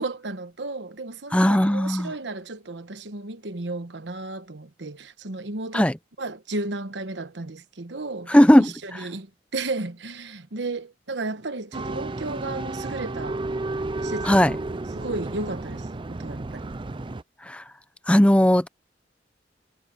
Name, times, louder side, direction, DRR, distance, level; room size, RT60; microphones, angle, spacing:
voice 1, 0.0-5.9 6.2-9.3 9.5-13.4 14.0-14.6 14.9-16.7, right 2 dB, 85° right, 1.2 m, -34 dB
voice 2, 1.3-2.1 5.7-5.9 8.3-9.0 14.2-14.5 17.5-17.6 18.1-18.7, equal, 5° left, 0.7 m, -17 dB
sound 1, 11.7-17.2, right 2 dB, 30° right, 0.5 m, -32 dB
head